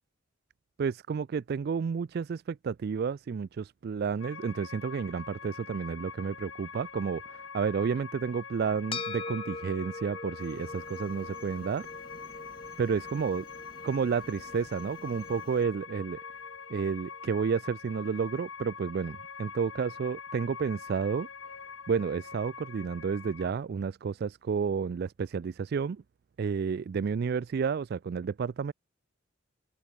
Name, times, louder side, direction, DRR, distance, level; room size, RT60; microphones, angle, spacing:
voice 1, 0.8-11.9 12.8-13.5 13.8-16.2 16.7-21.3 21.9-26.0 26.4-28.7, right 6 dB, 50° right, 0.3 m, -31 dB
sound 1, 4.2-23.5, left 6 dB, 75° left, 1.5 m, -45 dB
sound 2, 8.9-17.5, left 3 dB, 25° left, 1.6 m, -44 dB
sound 3, 10.4-15.6, left 2 dB, 50° left, 3.6 m, -54 dB
head